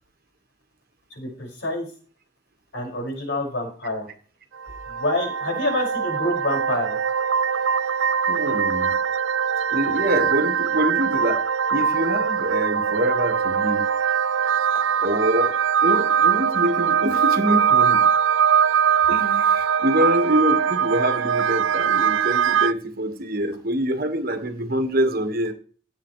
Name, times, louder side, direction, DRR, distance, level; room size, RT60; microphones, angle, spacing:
voice 1, 1.1-1.9 2.7-4.1 4.9-7.0, left 1 dB, 65° left, 0 dB, 5.7 m, -27 dB
sound 1, 4.6-22.7, right 7 dB, 75° right, 0.5 m, -22 dB
voice 2, 8.3-8.9 9.7-11.4 11.7-13.9 15.0-15.6 15.8-18.1 19.1-25.5, equal, 50° right, 7 dB, 1.5 m, -25 dB
17.5 x 7.8 x 3.2 m, 0.40 s
head